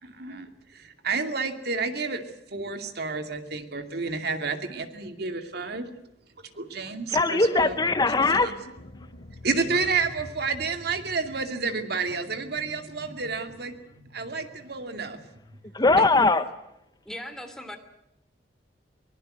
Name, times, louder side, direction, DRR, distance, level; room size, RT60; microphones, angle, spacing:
voice 1, 0.0-2.3 2.5-5.8 6.6-7.8 9.4-15.2, right 4 dB, 65° right, 7 dB, 2.5 m, -30 dB
voice 2, 7.1-8.6 15.7-16.4, left 3 dB, 25° left, 10 dB, 0.9 m, -20 dB
sound 1, 7.7-12.0, left 1 dB, 50° left, 6.6 m, -46 dB
voice 3, 17.0-17.8, left 1 dB, 5° left, 6 dB, 3.0 m, -38 dB
23.5 x 21.0 x 7.9 m, 0.81 s
head